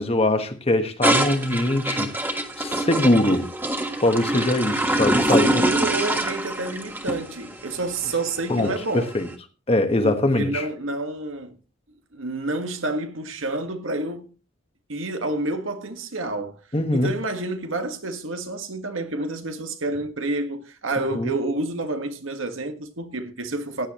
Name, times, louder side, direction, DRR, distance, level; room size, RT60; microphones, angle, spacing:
voice 1, 0.0-3.5 4.0-5.5 8.5-9.3 9.7-10.7 16.7-17.1 21.1-21.3, left 1 dB, 30° left, 1.3 m, -22 dB
sound 1, 1.0-9.2, right 1 dB, 10° right, 1.4 m, -25 dB
voice 2, 5.4-9.1 10.0-11.6 12.1-14.3 14.9-16.6 16.9-23.9, right 2 dB, 85° right, 1.6 m, -29 dB
15.5 x 9.8 x 3.0 m
head